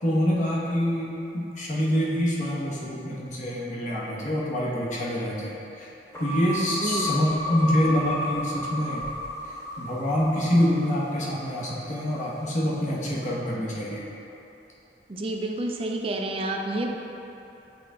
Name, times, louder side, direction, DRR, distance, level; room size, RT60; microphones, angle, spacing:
voice 1, 0.0-5.9 6.2-9.0 9.8-14.0, equal, 40° left, -5 dB, 1.0 m, -26 dB
sound 1, 6.1-12.5, left 1 dB, 15° left, 0.7 m, -33 dB
voice 2, 6.8-7.1 15.1-17.0, right 2 dB, 30° right, 2 dB, 0.4 m, -29 dB
7.6 x 3.4 x 3.7 m, 2.9 s
head